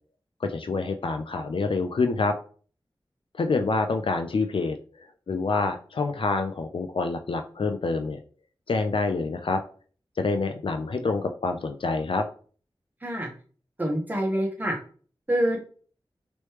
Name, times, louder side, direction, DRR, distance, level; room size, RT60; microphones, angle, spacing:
voice 1, 0.4-2.4 3.3-4.8 5.3-8.2 8.7-9.6 10.2-12.3, left 3 dB, 70° left, 6 dB, 0.4 m, -27 dB
voice 2, 13.8-14.8 15.3-15.6, right 1 dB, 20° right, -1 dB, 1.1 m, -26 dB
3.1 x 3.0 x 3.1 m, 0.43 s
wide cardioid pair, 65°, 9 cm